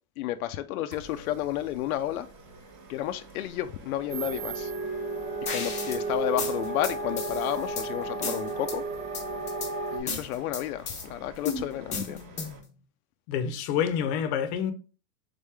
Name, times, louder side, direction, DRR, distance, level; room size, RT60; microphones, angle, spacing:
voice 1, 0.2-2.3 2.9-4.7 5.5-8.8 9.9-12.2, left 13 dB, 90° left, 0.5 m, -31 dB
sound 1, 0.9-12.6, right 2 dB, 40° right, 1.1 m, -49 dB
sound 2, 4.1-10.0, right 3 dB, 20° right, 0.4 m, -33 dB
sound 3, 5.5-6.0 6.4-7.9 8.2-8.8 9.1-9.7 10.1-11.0 11.5-12.7, left 5 dB, 15° left, 0.8 m, -34 dB
voice 2, 13.3-14.7, left 8 dB, 50° left, 0.7 m, -27 dB
3.6 x 3.6 x 3.3 m
supercardioid pair, 155°, 42 cm